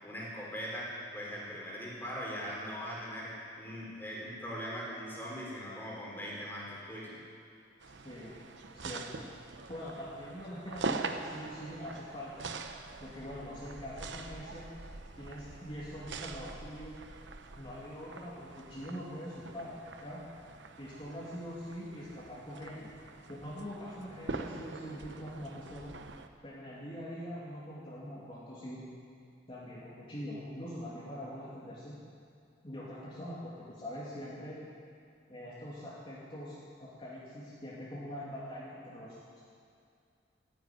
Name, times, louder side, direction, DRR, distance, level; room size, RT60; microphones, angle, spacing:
voice 1, 0.0-7.2, equal, 10° left, -5 dB, 4.1 m, -40 dB
sound 1, 7.8-26.3, right 3 dB, 80° right, 0.9 m, -44 dB
voice 2, 8.7-9.3 9.7-12.5 13.0-14.7 15.2-16.9 17.6-20.2 20.8-22.9 23.3-25.9 26.4-28.8 29.5-31.9 32.6-34.6 35.3-36.5 36.8-39.4, equal, 30° left, -8 dB, 2.7 m, -43 dB
14.5 x 10.5 x 9.3 m, 2.4 s
head